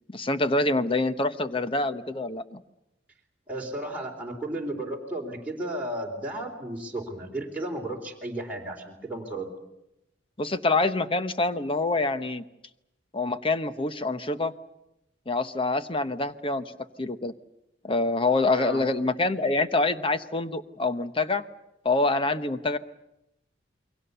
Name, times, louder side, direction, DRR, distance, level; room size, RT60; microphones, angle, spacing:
voice 1, 0.1-2.6 10.4-12.4 13.1-14.5 15.3-16.7 17.0-17.3 17.8-21.4 21.8-22.8, left 2 dB, 30° left, 11 dB, 1.0 m, -26 dB
voice 2, 3.5-9.5 18.5-18.8, right 1 dB, 10° right, -3 dB, 3.8 m, -34 dB
28.5 x 23.0 x 6.9 m, 0.89 s
head